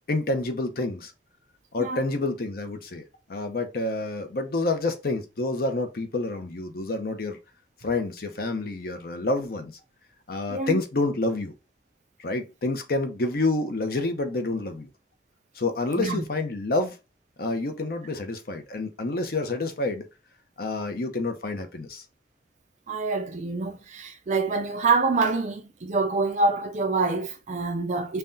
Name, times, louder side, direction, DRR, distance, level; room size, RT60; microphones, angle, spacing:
voice 1, 0.1-1.1 1.7-3.0 3.3-7.4 7.8-9.7 10.3-11.5 12.2-14.9 15.6-17.0 17.4-20.1 20.6-22.0, left 2 dB, 55° left, 0.6 m, -28 dB
voice 2, 10.5-10.8 16.0-16.2 22.9-28.2, right 3 dB, 40° right, 0.4 m, -26 dB
5.6 x 2.2 x 2.6 m
head